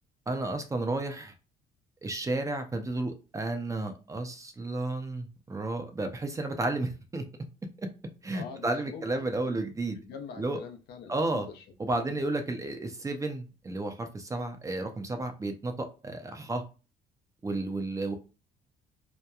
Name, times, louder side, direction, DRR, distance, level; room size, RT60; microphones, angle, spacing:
voice 1, 0.3-1.3 2.0-7.2 8.2-10.0 10.4-10.6 11.1-11.5 11.8-16.6 17.4-18.2, right 2 dB, 20° right, 0.5 m, -32 dB
voice 2, 8.3-9.5 9.9-11.6 11.9-12.4, left 6 dB, 75° left, 0.6 m, -44 dB
2.9 x 2.1 x 2.2 m
cardioid pair, 110°, 17 cm